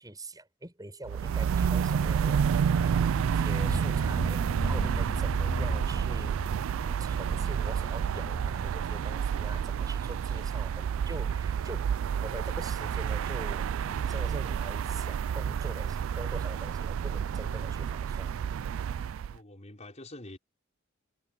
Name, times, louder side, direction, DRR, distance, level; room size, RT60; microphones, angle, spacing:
voice 1, 0.0-6.5 6.8-13.8 14.1-18.4, right 1 dB, 20° right, 7.4 m, -44 dB
sound 1, 1.1-19.4, right 7 dB, 70° right, 0.3 m, -29 dB
Car / Engine, 1.6-8.6, equal, 70° left, 2.3 m, -38 dB
voice 2, 19.3-20.4, left 1 dB, 35° left, 4.0 m, -46 dB
head